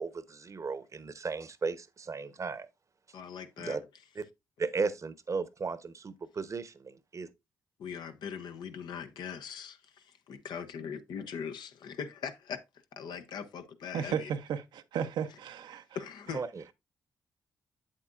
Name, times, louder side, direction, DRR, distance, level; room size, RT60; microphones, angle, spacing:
voice 1, 0.0-2.7 3.6-3.8 4.2-4.3 4.6-7.3 16.3-16.6, right 4 dB, 45° right, 0.9 m, -35 dB
voice 2, 3.1-3.8 7.8-12.6 12.9-14.3 15.9-16.4, left 7 dB, 75° left, 0.8 m, -41 dB
voice 3, 13.9-15.8, right 8 dB, 80° right, 0.7 m, -34 dB
7.6 x 7.5 x 2.5 m
supercardioid pair, 50°, 8 cm